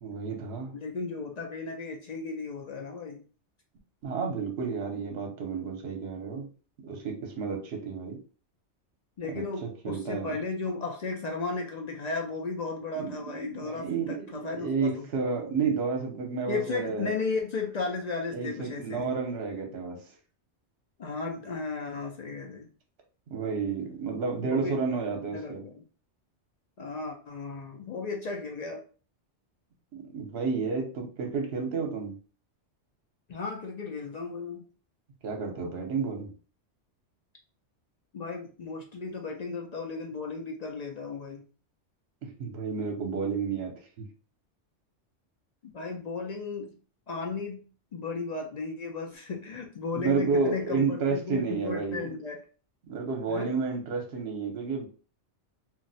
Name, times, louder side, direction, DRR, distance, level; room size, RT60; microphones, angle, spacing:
voice 1, 0.0-0.7 4.0-6.5 6.8-8.2 9.3-10.4 13.0-13.2 13.5-17.1 18.3-20.0 23.3-25.6 29.9-32.2 35.2-36.3 42.2-43.7 49.9-52.1 52.8-54.9, right 5 dB, 65° right, 3 dB, 1.0 m, -31 dB
voice 2, 0.7-3.2 9.2-15.1 16.5-19.1 21.0-22.7 24.4-24.8 25.3-25.8 26.8-28.8 33.3-34.6 38.1-41.4 45.6-46.7 47.1-47.6 47.9-52.4 53.3-53.5, left 4 dB, 60° left, 1 dB, 0.4 m, -35 dB
2.4 x 2.0 x 3.9 m, 0.38 s
omnidirectional pair, 1.2 m